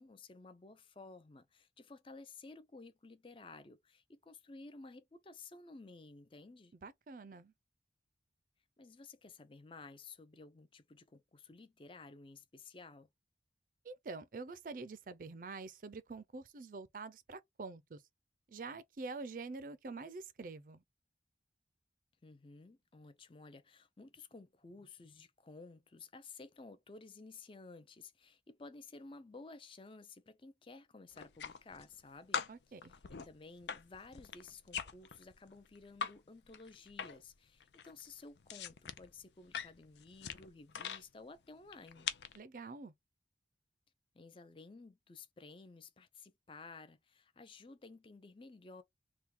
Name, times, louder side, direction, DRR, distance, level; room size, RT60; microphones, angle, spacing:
voice 1, 0.0-6.7 8.8-13.1 22.2-32.5 32.8-42.1 44.1-48.8, left 3 dB, 30° left, 0.5 m, -54 dB
voice 2, 6.8-7.5 13.8-18.0 18.5-20.8 32.5-32.9 42.4-42.9, right 3 dB, 50° right, 0.4 m, -46 dB
sound 1, 31.1-32.0 32.3-36.1 36.4-37.3 37.6-41.0 41.7-42.4, left 7 dB, 80° left, 0.5 m, -43 dB
3.5 x 2.2 x 4.4 m
head